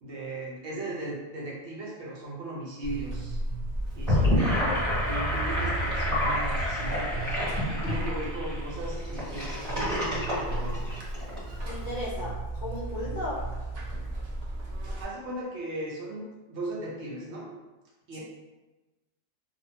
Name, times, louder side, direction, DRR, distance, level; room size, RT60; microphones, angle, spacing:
voice 1, 0.0-3.4 3.9-7.4 7.7-10.8 14.6-17.5 18.1-18.2, right 2 dB, 65° right, -4 dB, 0.9 m, -37 dB
Buzz, 2.8-15.0, right 1 dB, 90° right, 0.3 m, -35 dB
Gurgling / Sink (filling or washing), 3.9-11.4, left 1 dB, 25° right, 1.4 m, -28 dB
voice 2, 11.6-13.5 18.1-18.2, left 1 dB, 60° left, -7 dB, 0.5 m, -35 dB
2.7 x 2.2 x 2.7 m, 1.1 s
omnidirectional pair, 1.3 m